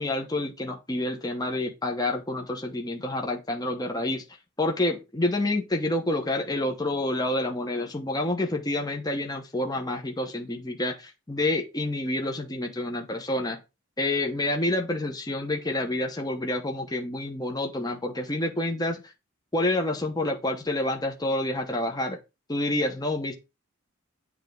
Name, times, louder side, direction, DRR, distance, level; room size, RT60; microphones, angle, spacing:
voice 1, 0.0-4.2 4.6-13.6 14.0-19.1 19.5-22.2 22.5-23.3, left 1 dB, 20° left, 3 dB, 1.0 m, -28 dB
8.9 x 3.5 x 5.3 m, 0.27 s
head